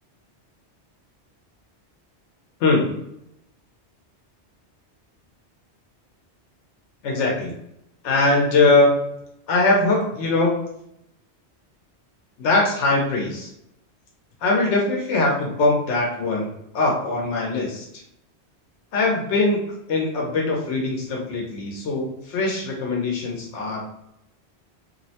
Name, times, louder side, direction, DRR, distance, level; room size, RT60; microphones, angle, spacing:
voice 1, 2.6-2.9 7.0-7.5 8.0-8.9 9.5-10.6 12.4-13.5 14.4-16.5 16.7-17.9 18.9-19.6 19.9-23.8, left 2 dB, 85° left, -1 dB, 1.0 m, -21 dB
2.7 x 2.0 x 2.7 m, 0.78 s
omnidirectional pair, 1.2 m